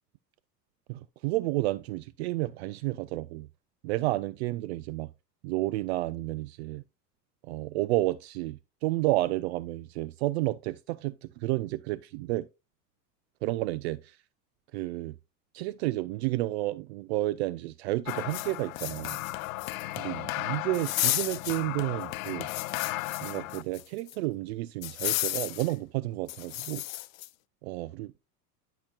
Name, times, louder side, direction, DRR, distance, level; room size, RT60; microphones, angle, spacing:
voice 1, 0.9-3.5 3.8-5.1 5.4-6.8 7.4-12.5 13.4-14.2 14.7-15.1 15.5-19.2 20.0-22.5 23.2-26.8 27.6-28.2, right 18 dB, 45° right, 0.4 m, -31 dB
sound 1, 18.1-23.8 24.1-24.2 24.8-25.7 26.3-27.3, left 18 dB, 55° left, 0.5 m, -33 dB
11.5 x 5.9 x 2.3 m
figure-of-eight pair, 85°, 49 cm